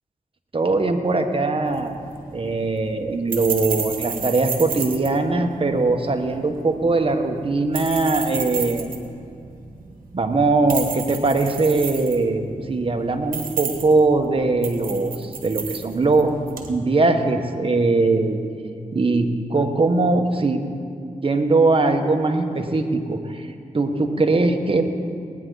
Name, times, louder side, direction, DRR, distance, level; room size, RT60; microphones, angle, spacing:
voice 1, 0.5-1.9 2.3-8.9 10.1-16.3 16.7-18.4 18.9-20.6 21.2-24.8, right 3 dB, 40° right, 4 dB, 1.3 m, -21 dB
sound 1, 1.7-16.7, right 6 dB, 85° right, 1.3 m, -33 dB
19.5 x 9.6 x 4.0 m, 2.4 s
cardioid pair, 50°, 14 cm